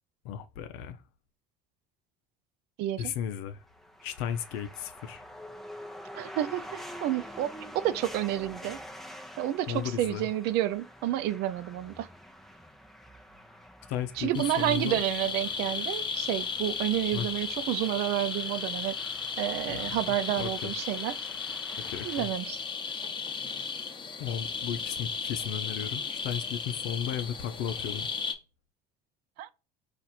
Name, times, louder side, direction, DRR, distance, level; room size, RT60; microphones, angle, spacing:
voice 1, 0.2-1.0 3.0-3.6 4.0-5.2 9.7-10.3 13.9-15.0 17.1-17.3 19.5-20.7 21.9-22.3 24.2-28.1, left 9 dB, 85° left, 0.6 m, -35 dB
voice 2, 2.8-3.1 6.1-8.8 9.4-12.1 14.2-19.0 19.4-21.2 22.0-22.6 29.4-29.5, right 13 dB, 75° right, 0.5 m, -30 dB
sound 1, 3.6-22.2, equal, ahead, 0.7 m, -47 dB
sound 2, 14.3-28.3, left 5 dB, 30° left, 0.9 m, -35 dB
4.3 x 2.5 x 4.1 m
supercardioid pair, 100°, 17 cm